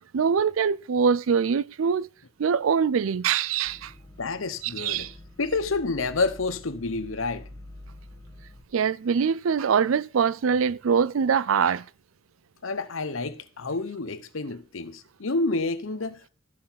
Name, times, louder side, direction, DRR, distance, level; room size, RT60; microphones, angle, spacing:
voice 1, 0.1-2.1 2.4-3.9 4.6-5.1 8.7-11.8, right 6 dB, 80° right, 0.4 m, -23 dB
sound 1, 3.7-8.6, left 1 dB, 15° left, 1.3 m, -47 dB
voice 2, 4.2-5.1 5.4-7.5 12.6-16.3, left 3 dB, 75° left, 1.0 m, -29 dB
13.0 x 6.2 x 5.8 m
head